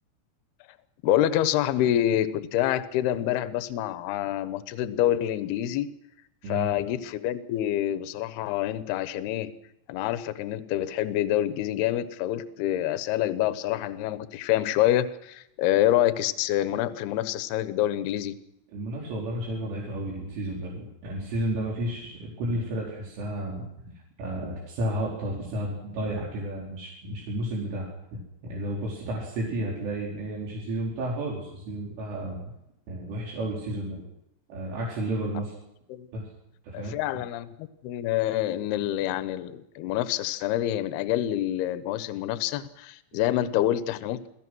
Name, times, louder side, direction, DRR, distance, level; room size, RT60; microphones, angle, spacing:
voice 1, 1.0-5.9 6.5-9.5 9.9-18.4 35.9-36.1 36.7-37.5 37.8-44.3, left 12 dB, 70° left, 12 dB, 2.5 m, -27 dB
voice 2, 18.7-23.9 24.2-32.4 32.9-34.0 34.5-35.5 36.1-36.3 36.6-37.0, right 1 dB, 70° right, -4 dB, 6.7 m, -32 dB
29.5 x 18.5 x 6.3 m, 0.82 s
omnidirectional pair, 5.9 m